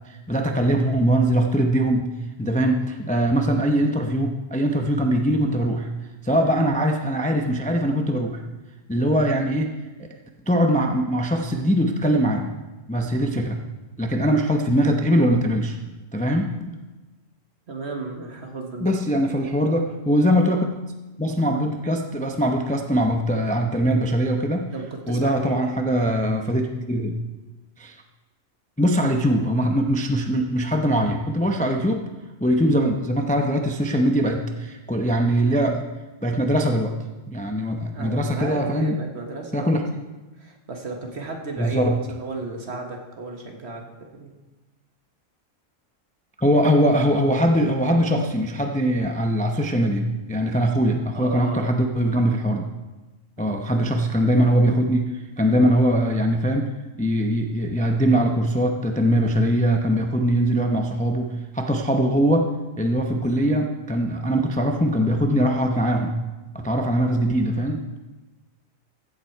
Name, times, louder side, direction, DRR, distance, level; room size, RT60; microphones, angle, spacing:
voice 1, 0.1-2.1 2.4-5.9 6.2-8.4 8.9-9.7 10.5-12.5 12.9-13.6 14.0-15.8 16.1-16.8 18.8-20.7 21.2-24.7 25.1-27.1 27.8-28.0 28.8-32.0 32.4-35.8 36.2-37.0 37.3-39.0 39.5-39.8 41.6-42.0 46.4-52.7 53.4-55.0 55.4-56.7 57.0-66.1 66.5-67.8, equal, 10° left, 3 dB, 0.5 m, -21 dB
voice 2, 17.7-18.9 19.4-19.6 24.7-25.7 37.9-39.8 40.3-43.8 44.1-44.3 51.1-51.7 53.4-53.5, right 3 dB, 55° right, 2 dB, 1.7 m, -34 dB
15.5 x 7.4 x 4.5 m, 1.2 s
omnidirectional pair, 1.3 m